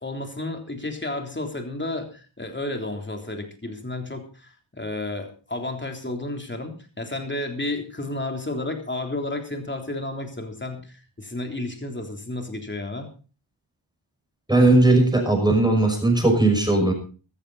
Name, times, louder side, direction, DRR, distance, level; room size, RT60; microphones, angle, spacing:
voice 1, 0.0-13.1, left 2 dB, 20° left, 4 dB, 3.5 m, -32 dB
voice 2, 14.5-16.9, right 2 dB, 10° right, 3 dB, 6.1 m, -18 dB
15.0 x 13.5 x 4.2 m, 0.36 s
wide cardioid pair, 105°, 48 cm